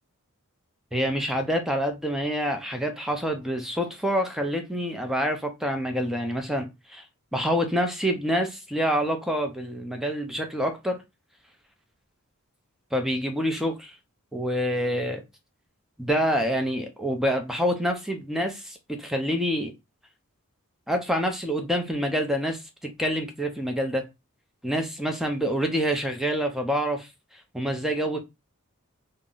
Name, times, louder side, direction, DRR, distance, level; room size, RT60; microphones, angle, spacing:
voice 1, 0.9-7.0 7.3-11.0 12.9-13.9 14.3-15.2 16.0-19.7 20.9-24.1 24.6-27.1 27.5-28.2, equal, ahead, 0.4 m, -27 dB
2.5 x 2.0 x 3.7 m
head